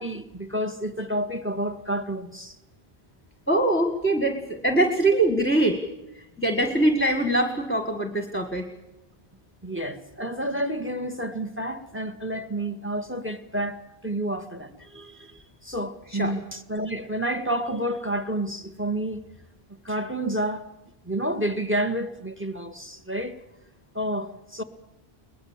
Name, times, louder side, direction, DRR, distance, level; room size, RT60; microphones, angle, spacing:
voice 1, 0.0-2.5 9.6-13.8 14.0-19.2 19.8-20.7 21.0-23.4 23.9-24.6, right 1 dB, 10° right, 1.5 m, -30 dB
voice 2, 3.5-5.8 6.4-8.7 16.1-16.3, right 1 dB, 10° left, 1.7 m, -23 dB
22.5 x 20.0 x 7.4 m
omnidirectional pair, 1.0 m